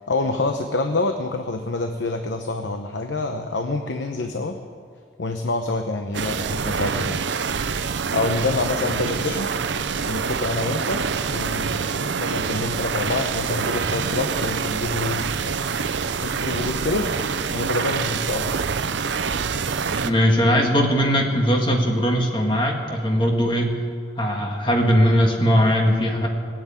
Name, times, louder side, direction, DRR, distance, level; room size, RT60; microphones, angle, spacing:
voice 1, 0.1-4.6 5.2-7.2 8.1-9.5 10.0-15.6 16.2-17.2 17.5-18.6, left 2 dB, 75° left, 6 dB, 0.9 m, -27 dB
sound 1, 6.1-20.1, right 5 dB, 75° right, 0.6 m, -26 dB
voice 2, 8.8-9.4 20.0-23.8 24.2-26.3, equal, 25° left, 1 dB, 1.8 m, -20 dB
20.0 x 8.0 x 8.9 m, 2.1 s
head